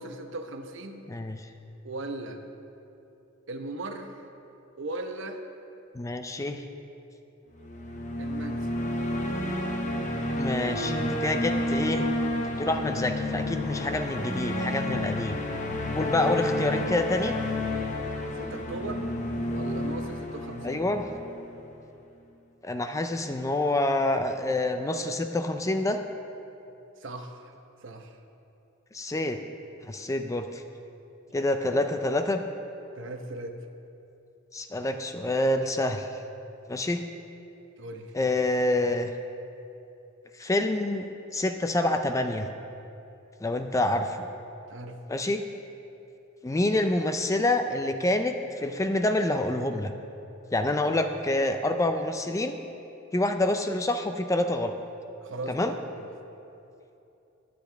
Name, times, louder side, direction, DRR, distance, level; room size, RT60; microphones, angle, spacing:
voice 1, 0.0-1.1 1.8-2.4 3.5-4.2 4.8-5.4 8.2-8.8 18.4-19.1 19.5-20.8 27.0-27.5 27.8-28.1 33.0-33.6 37.8-38.1 44.7-45.0 55.2-56.1, right 2 dB, 65° right, 5 dB, 1.0 m, -38 dB
voice 2, 1.1-1.5 5.9-6.6 10.4-12.1 12.6-15.4 15.9-17.4 20.6-21.1 22.6-26.0 28.9-29.4 29.8-30.6 31.3-32.4 34.5-36.1 36.7-37.0 38.1-39.1 40.4-42.5 43.4-44.3 45.1-45.4 46.4-49.9 50.5-52.6 53.1-54.8 55.5-55.7, left 1 dB, 15° left, 7 dB, 0.4 m, -27 dB
sound 1, 7.5-21.7, left 1 dB, 40° left, 0.8 m, -30 dB
22.0 x 7.8 x 3.4 m, 2.8 s
head